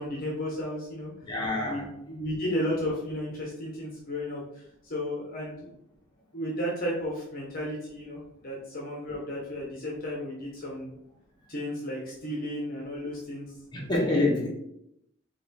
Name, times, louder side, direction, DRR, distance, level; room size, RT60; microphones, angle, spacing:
voice 1, 0.0-1.1 1.6-1.8 2.1-4.4 4.8-5.7 6.3-10.9 11.5-13.5 14.1-14.3, left 1 dB, 45° left, -3 dB, 0.9 m, -33 dB
voice 2, 1.2-2.1 13.7-14.5, left 2 dB, 20° left, -3 dB, 1.2 m, -27 dB
4.1 x 3.0 x 4.2 m, 0.77 s
head